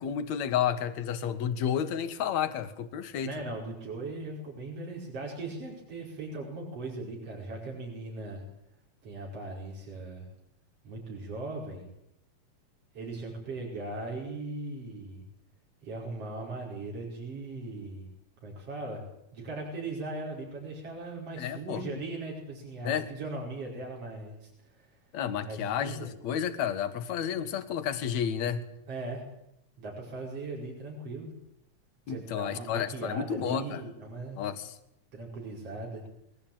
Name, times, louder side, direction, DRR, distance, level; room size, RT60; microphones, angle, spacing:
voice 1, 0.0-3.3 21.4-21.8 22.8-23.1 25.1-28.6 32.1-33.8 34.4-34.7, left 8 dB, 70° left, 11 dB, 2.7 m, -31 dB
voice 2, 3.2-8.4 9.0-10.3 10.8-11.9 12.9-15.2 15.8-18.1 18.4-25.0 25.4-26.1 28.9-29.2 29.8-31.3 32.1-34.4 35.1-36.0, right 2 dB, 50° right, -2 dB, 6.3 m, -39 dB
21.5 x 20.5 x 8.9 m, 0.81 s
omnidirectional pair, 3.4 m